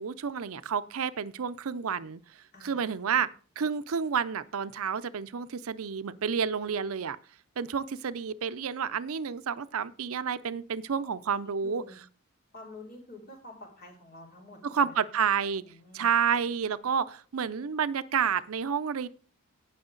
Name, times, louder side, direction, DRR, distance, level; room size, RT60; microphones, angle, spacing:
voice 1, 0.0-2.2 2.6-3.3 3.6-7.2 7.6-11.8 14.6-15.6 15.9-19.1, right 7 dB, 70° right, 15 dB, 0.5 m, -30 dB
voice 2, 2.5-3.2 11.0-12.0 12.5-14.9 15.5-16.1, left 2 dB, 45° left, -1 dB, 4.4 m, -49 dB
17.5 x 6.3 x 3.8 m, 0.40 s
head